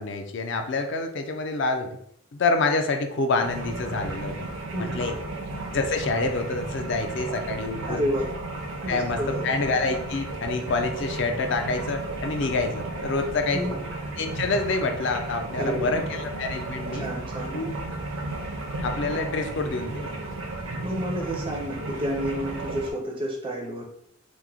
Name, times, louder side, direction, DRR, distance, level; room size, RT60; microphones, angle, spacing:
voice 1, 0.0-2.0 2.3-4.5 4.9-5.1 5.7-8.0 8.9-13.6 14.2-17.1 17.5-17.7 18.8-20.1, left 3 dB, 55° left, 5 dB, 0.4 m, -27 dB
sound 1, 3.4-22.9, right 2 dB, 75° right, 0.6 m, -34 dB
voice 2, 4.7-5.1 7.8-8.3 8.8-9.5 13.5-13.8 15.6-15.9 16.9-17.5 20.8-23.8, equal, 25° right, 0 dB, 0.4 m, -30 dB
3.0 x 2.0 x 3.6 m, 0.70 s
head